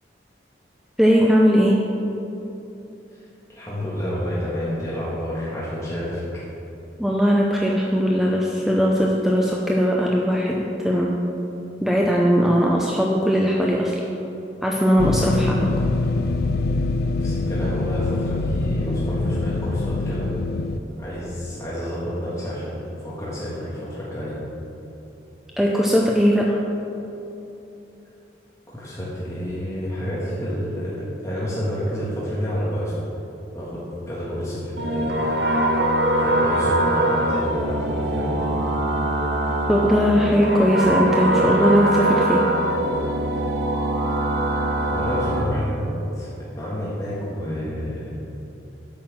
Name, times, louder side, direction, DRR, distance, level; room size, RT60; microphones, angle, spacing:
voice 1, 1.0-1.8 7.0-11.1 11.8-14.0 14.6-15.7 25.6-26.6 39.7-42.5, equal, ahead, -2 dB, 0.5 m, -19 dB
voice 2, 3.5-6.5 17.2-20.3 21.0-24.4 28.7-33.1 33.5-35.1 36.2-38.5 44.9-48.2, equal, 15° left, -9 dB, 1.6 m, -29 dB
sound 1, 15.0-20.8, left 2 dB, 55° left, 0.3 m, -24 dB
sound 2, 34.8-45.4, right 1 dB, 65° right, 1.0 m, -22 dB
8.7 x 5.9 x 7.2 m, 2.9 s
head